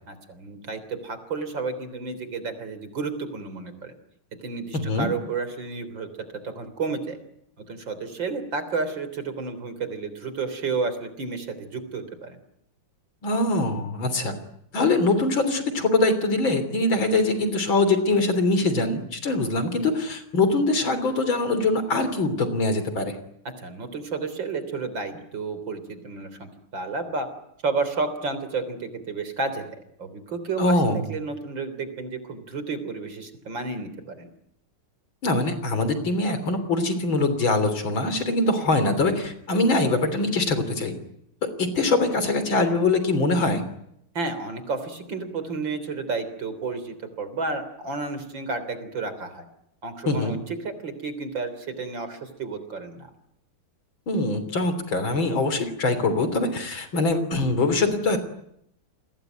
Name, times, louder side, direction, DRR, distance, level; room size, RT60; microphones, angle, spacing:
voice 1, 0.1-4.0 4.4-6.1 6.4-7.2 7.6-12.4 23.6-27.3 27.6-29.6 30.0-30.8 31.1-34.3 44.1-49.4 49.8-53.1, right 4 dB, 60° right, 11 dB, 4.2 m, -31 dB
voice 2, 4.7-5.1 13.2-14.3 14.7-23.2 30.6-31.1 35.2-40.9 41.6-43.6 50.1-50.4 54.1-58.2, left 2 dB, 65° left, 11 dB, 4.1 m, -23 dB
29.5 x 21.5 x 9.3 m, 0.76 s
omnidirectional pair, 2.3 m